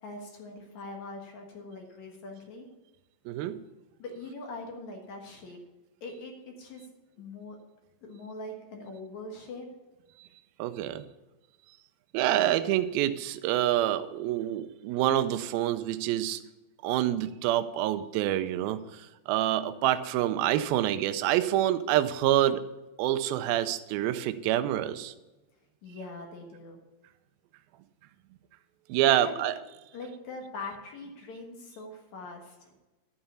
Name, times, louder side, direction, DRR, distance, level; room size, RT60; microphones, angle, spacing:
voice 1, 0.0-2.7 4.0-5.6 6.0-6.9 7.2-7.6 8.0-9.7 25.8-26.8 29.0-29.5 29.9-32.7, left 2 dB, 60° left, 2 dB, 2.1 m, -42 dB
voice 2, 3.3-3.6 10.6-11.0 12.1-16.4 16.8-22.6 23.0-25.1 28.9-29.5, right 12 dB, 85° right, 10 dB, 2.1 m, -27 dB
11.5 x 5.6 x 7.0 m, 1.1 s
omnidirectional pair, 4.9 m